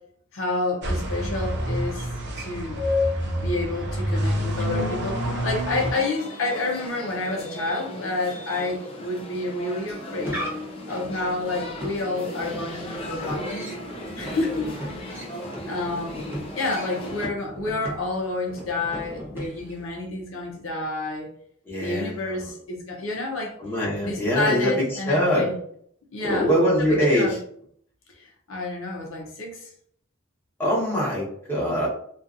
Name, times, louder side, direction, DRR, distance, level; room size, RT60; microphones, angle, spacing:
voice 1, 0.3-2.1 2.4-2.8 3.4-10.4 10.9-13.7 14.2-15.0 15.7-16.3 16.6-21.3 21.8-23.5 24.0-25.6 26.1-26.5 26.8-27.4 28.1-29.7, left 2 dB, 70° left, 0 dB, 0.6 m, -29 dB
sound 1, 0.8-5.9, equal, 55° right, 0.5 m, -27 dB
sound 2, 5.8-17.3, equal, 30° left, 0.5 m, -37 dB
sound 3, 9.8-19.9, equal, 10° right, 0.7 m, -38 dB
voice 2, 21.6-22.5 23.6-25.5 26.2-27.4 30.6-31.9, equal, 10° left, -7 dB, 1.0 m, -23 dB
2.6 x 2.4 x 2.4 m, 0.64 s
head